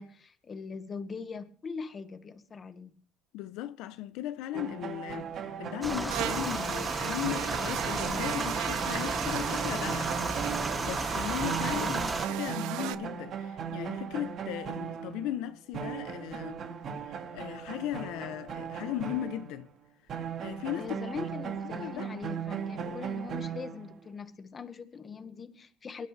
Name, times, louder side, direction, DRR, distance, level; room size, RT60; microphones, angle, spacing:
voice 1, 0.0-3.0 11.6-12.2 20.8-26.1, left 5 dB, 30° left, 1.7 m, -41 dB
voice 2, 3.3-10.2 10.8-12.0 12.2-16.6 17.1-19.7 20.1-20.9 21.8-22.1, left 13 dB, 75° left, 0.8 m, -37 dB
sound 1, 4.5-11.2 11.4-19.6 20.1-24.0, right 7 dB, 45° right, 2.2 m, -38 dB
sound 2, 5.8-12.3, right 2 dB, 15° right, 1.6 m, -33 dB
Buzz, 6.1-12.9, right 14 dB, 75° right, 1.1 m, -36 dB
23.5 x 12.0 x 3.4 m
cardioid pair, 125°, 0 cm